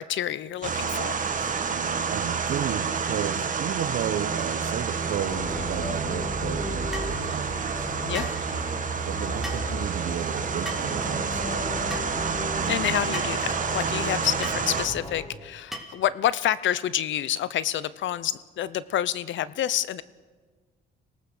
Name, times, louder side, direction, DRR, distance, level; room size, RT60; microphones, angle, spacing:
voice 1, 0.0-1.5 8.0-8.3 12.7-20.0, left 11 dB, 70° left, 17 dB, 0.8 m, -28 dB
sound 1, 0.6-14.9, right 6 dB, 40° right, 1.9 m, -29 dB
voice 2, 2.1-7.9 9.0-11.7 13.1-13.3, right 10 dB, 80° right, 13 dB, 1.2 m, -33 dB
sound 2, 4.3-15.3, left 2 dB, 30° left, 3.0 m, -36 dB
sound 3, 6.9-7.2 8.1-8.4 9.4-9.7 10.6-10.9 11.9-12.1 13.1-13.4 14.4-14.6 15.7-16.0, equal, ahead, 2.9 m, -36 dB
25.0 x 18.5 x 6.7 m, 1.4 s
cardioid pair, 90°, 20 cm